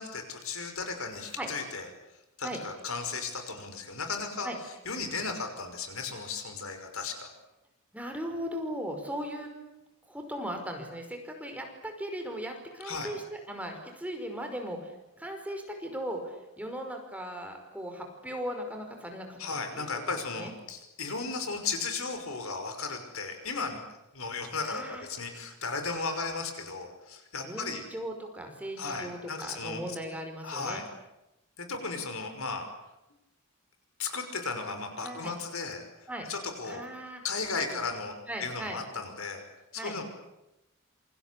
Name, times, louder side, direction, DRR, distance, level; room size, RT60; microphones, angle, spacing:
voice 1, 0.0-1.9 2.4-4.5 4.9-7.3 12.8-13.1 19.4-23.8 24.1-27.8 28.8-29.8 30.4-30.8 31.6-32.7 34.0-35.8 36.3-36.8 37.2-38.1 38.4-39.4 39.7-40.0, left 4 dB, 65° left, 7 dB, 5.7 m, -35 dB
voice 2, 7.9-9.5 10.0-19.4 19.7-19.9 20.3-20.5 24.6-25.1 27.4-30.8 35.0-35.3 36.1-36.3 36.7-37.2 37.7-37.8 38.3-38.8 39.8-40.0, equal, 5° right, 4 dB, 5.2 m, -38 dB
28.0 x 25.0 x 8.5 m, 0.93 s
head